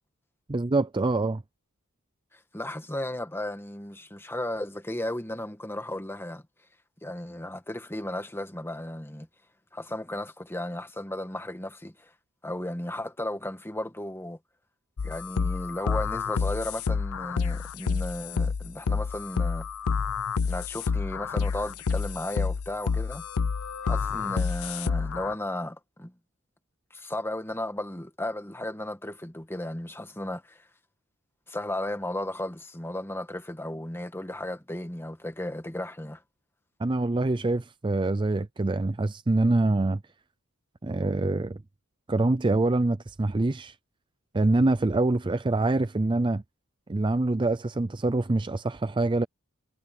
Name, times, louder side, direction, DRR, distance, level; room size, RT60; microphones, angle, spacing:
voice 1, 0.5-1.4 36.8-40.0 40.8-41.6 42.1-43.7 44.3-46.4 46.9-49.2, right 2 dB, 20° right, 0.5 m, -25 dB
voice 2, 2.3-6.4 7.0-9.3 9.7-12.1 12.4-14.4 15.0-19.7 20.4-23.2 23.8-26.1 26.9-30.6 31.5-36.2, left 1 dB, 10° left, 1.7 m, -35 dB
sound 1, 15.0-25.3, left 5 dB, 75° left, 0.6 m, -29 dB
head